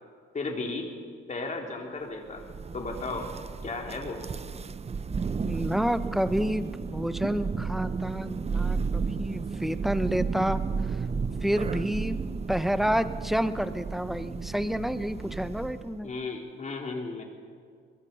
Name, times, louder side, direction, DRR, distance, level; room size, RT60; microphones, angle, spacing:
voice 1, 0.3-0.9 1.3-2.4 2.7-3.3 3.6-4.2 16.0-17.2, left 3 dB, 35° left, 1 dB, 3.7 m, -34 dB
Thunder, 2.3-16.0, right 5 dB, 30° right, 0.8 m, -33 dB
voice 2, 5.4-10.6 11.4-12.2 12.5-16.1, equal, ahead, 12 dB, 1.0 m, -29 dB
23.0 x 21.5 x 5.6 m, 2.1 s
cardioid pair, 90°, 20 cm